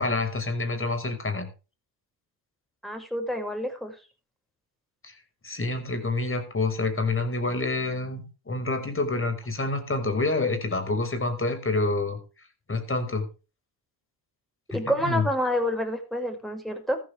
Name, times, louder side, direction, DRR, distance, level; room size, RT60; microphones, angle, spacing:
voice 1, 0.0-1.5 5.0-5.1 5.4-12.2 12.7-13.3 14.7-15.3, left 3 dB, 25° left, 7 dB, 5.4 m, -27 dB
voice 2, 2.8-3.9 14.7-17.0, equal, ahead, 3 dB, 6.2 m, -28 dB
14.0 x 13.5 x 3.5 m, 0.33 s
supercardioid pair, 75°, 48 cm